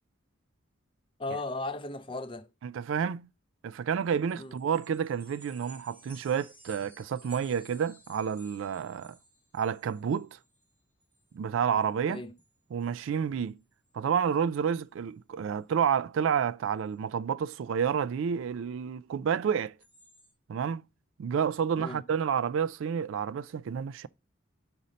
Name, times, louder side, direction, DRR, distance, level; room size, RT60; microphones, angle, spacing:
voice 1, 1.2-2.5 4.3-4.5 12.1-12.3 21.8-22.0, left 2 dB, 25° left, 0.5 m, -36 dB
voice 2, 2.6-3.3 3.6-9.2 9.5-10.3 11.3-12.2 12.7-13.6 13.9-19.7 20.5-20.8 21.2-24.1, right 7 dB, 70° right, 0.3 m, -30 dB
sound 1, 4.2-10.7 11.0-11.3 11.7-11.8 12.2-12.5 12.8-12.9 13.5-13.6 13.9-14.2 19.8-20.3, right 1 dB, 10° right, 1.0 m, -56 dB
5.3 x 4.2 x 5.0 m
head